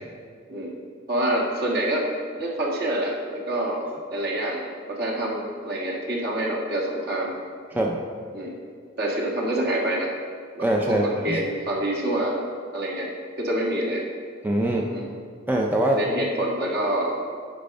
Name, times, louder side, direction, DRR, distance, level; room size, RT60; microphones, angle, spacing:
voice 1, 1.1-2.1 2.3-7.4 8.3-8.5 9.0-10.1 10.6-12.4 12.7-13.1 13.4-14.0 14.9-15.1 15.9-17.2, right 1 dB, 55° right, -2 dB, 1.8 m, -27 dB
voice 2, 7.7-8.0 10.6-11.4 14.4-14.9 15.5-16.0, right 1 dB, 10° right, -1 dB, 0.5 m, -23 dB
10.5 x 5.3 x 5.4 m, 2.1 s
head